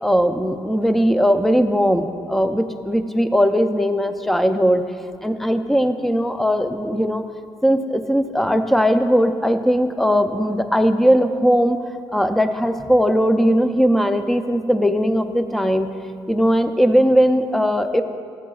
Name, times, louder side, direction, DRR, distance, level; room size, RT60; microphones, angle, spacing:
voice 1, 0.0-4.8 5.2-7.2 7.6-11.8 12.1-15.9 16.3-18.0, equal, ahead, 8 dB, 0.4 m, -19 dB
14.0 x 8.2 x 2.3 m, 2.2 s
cardioid pair, 120°, 10 cm